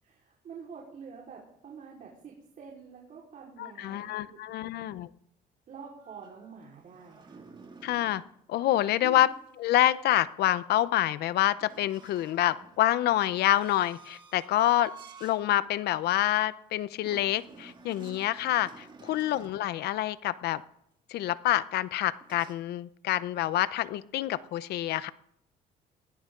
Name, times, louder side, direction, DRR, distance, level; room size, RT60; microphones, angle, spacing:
voice 1, 0.0-4.9 5.7-7.4 9.0-9.3 19.0-19.3, right 6 dB, 50° right, -3 dB, 4.8 m, -47 dB
voice 2, 3.6-5.1 7.8-8.2 8.5-9.3 9.6-14.9 15.2-20.6 21.1-25.1, left 13 dB, 75° left, 16 dB, 0.8 m, -27 dB
sound 1, 6.0-8.3 11.6-15.4 15.9-16.1 17.0-19.6 22.2-22.5, right 4 dB, 30° right, 2.6 m, -50 dB
20.0 x 17.5 x 3.9 m, 0.72 s
cardioid pair, 110°, 17 cm